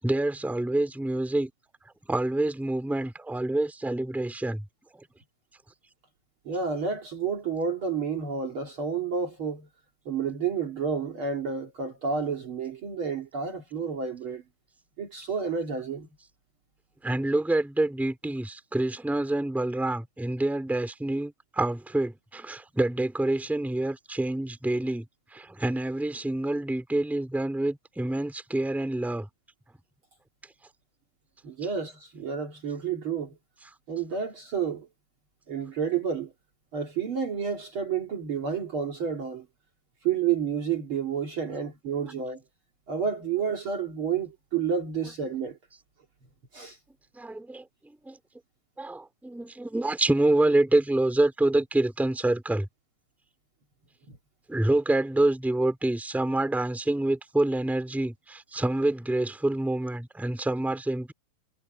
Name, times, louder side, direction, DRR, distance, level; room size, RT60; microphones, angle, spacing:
voice 1, 0.0-1.5 2.1-4.6 17.0-25.1 25.3-29.3 47.1-47.7 48.0-48.2 48.8-52.7 54.5-61.1, right 2 dB, ahead, 3.1 m, -27 dB
voice 2, 6.4-9.7 10.1-14.4 15.0-16.1 31.4-33.4 33.9-34.9 35.5-36.3 36.7-39.5 40.0-42.4 42.9-45.6 46.5-46.8, right 6 dB, 45° right, 2.9 m, -30 dB
omnidirectional pair, 3.4 m